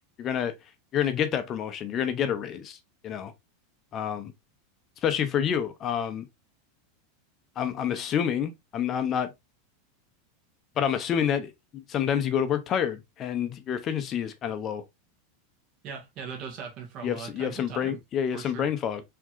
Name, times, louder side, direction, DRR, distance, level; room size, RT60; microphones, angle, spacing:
voice 1, 0.2-0.5 0.9-2.8 3.0-3.3 3.9-4.3 5.0-6.3 7.6-9.3 10.8-14.8 17.0-19.0, left 8 dB, 30° left, 0.6 m, -28 dB
voice 2, 15.8-18.0 18.3-18.7, right 6 dB, 45° right, 1.7 m, -40 dB
4.5 x 3.5 x 2.4 m
supercardioid pair, 135°, 0 cm